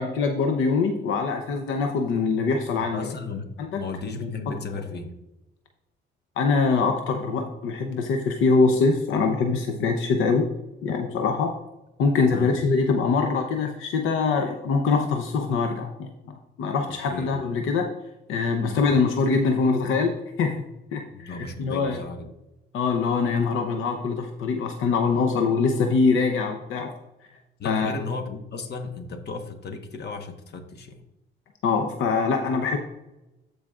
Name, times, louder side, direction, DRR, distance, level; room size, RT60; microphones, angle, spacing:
voice 1, 0.0-3.1 3.7-3.8 4.2-4.3 6.4-10.4 10.8-11.5 12.0-16.1 16.6-17.9 18.3-20.1 20.4-20.6 20.9-22.0 22.7-26.9 27.6-27.9 31.6-32.8, left 4 dB, 85° left, 4 dB, 0.8 m, -23 dB
voice 2, 2.9-5.1 12.3-12.6 17.1-17.4 18.6-18.9 21.1-22.3 27.6-31.0, left 4 dB, 55° left, 6 dB, 1.2 m, -35 dB
14.0 x 5.0 x 2.4 m, 0.93 s
cardioid pair, 90°, 20 cm